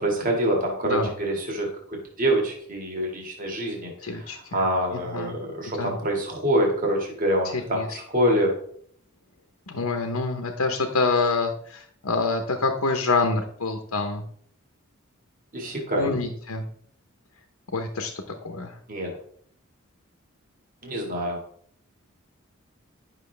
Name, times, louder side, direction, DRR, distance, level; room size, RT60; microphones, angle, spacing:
voice 1, 0.0-1.7 2.2-8.5 15.5-16.1 18.9-19.1 20.8-21.4, right 1 dB, 40° right, 0 dB, 1.8 m, -26 dB
voice 2, 4.0-4.6 5.1-5.3 5.8-6.0 7.5-7.9 9.7-14.2 15.9-16.6 17.7-18.1 18.4-18.7, left 3 dB, 85° left, 4 dB, 0.9 m, -26 dB
11.0 x 6.1 x 3.3 m, 0.63 s
head